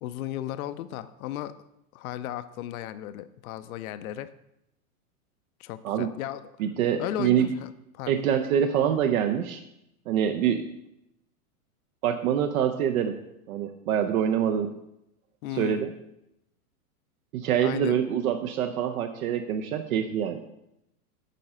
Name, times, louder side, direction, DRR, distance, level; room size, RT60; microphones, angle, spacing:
voice 1, 0.0-1.5 1.9-4.3 5.6-6.5 7.0-8.2 15.4-15.8 17.6-18.0, left 12 dB, 65° left, 13 dB, 0.6 m, -35 dB
voice 2, 6.6-7.5 8.1-9.6 10.1-10.7 12.0-13.2 13.5-14.7 15.5-15.9 17.3-20.4, right 9 dB, 65° right, 7 dB, 0.7 m, -25 dB
9.3 x 3.8 x 5.4 m, 0.84 s
supercardioid pair, 140°, 45 cm